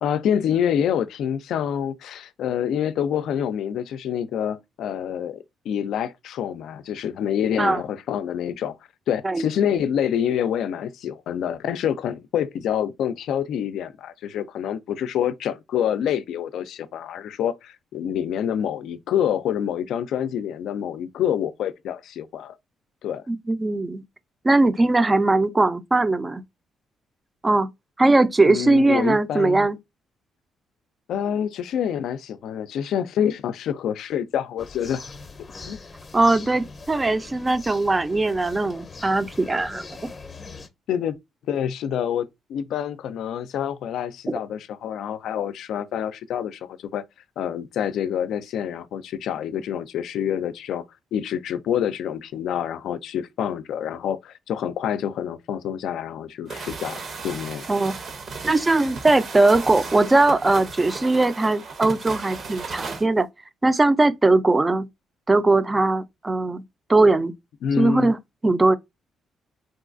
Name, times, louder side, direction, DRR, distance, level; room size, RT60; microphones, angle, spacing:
voice 1, 0.0-8.8 9.1-22.5 23.0-23.2 28.5-29.7 31.1-35.0 35.7-35.8 40.9-41.2 41.5-47.0 47.4-50.8 51.1-57.0 57.2-57.7 67.6-68.1, left 9 dB, 75° left, 0.3 m, -27 dB
voice 2, 23.3-24.0 24.4-26.4 27.4-27.7 28.0-29.8 36.1-39.8 57.7-57.9 58.4-63.3 63.6-64.9 65.3-66.6 66.9-67.3 67.8-68.2 68.4-68.8, right 2 dB, 20° right, 0.4 m, -20 dB
sound 1, 34.6-40.7, left 4 dB, 30° left, 0.6 m, -41 dB
sound 2, 56.5-63.1, right 4 dB, 55° right, 0.8 m, -35 dB
3.7 x 2.3 x 2.4 m
cardioid pair, 90°, 0 cm